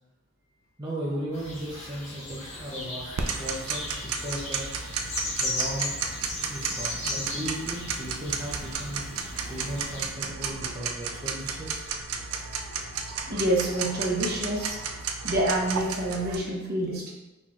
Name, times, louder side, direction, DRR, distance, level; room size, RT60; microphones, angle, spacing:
voice 1, 0.8-4.6 5.4-5.9 6.5-9.1 9.5-11.9, equal, 20° right, -6 dB, 0.6 m, -36 dB
sound 1, 1.3-10.0, left 2 dB, 30° left, 1.3 m, -37 dB
Tick-tock, 3.2-16.4, right 5 dB, 90° right, 0.5 m, -33 dB
voice 2, 13.3-14.8 15.2-17.1, right 1 dB, 45° right, -3 dB, 0.9 m, -27 dB
4.4 x 4.3 x 2.4 m, 1.0 s
head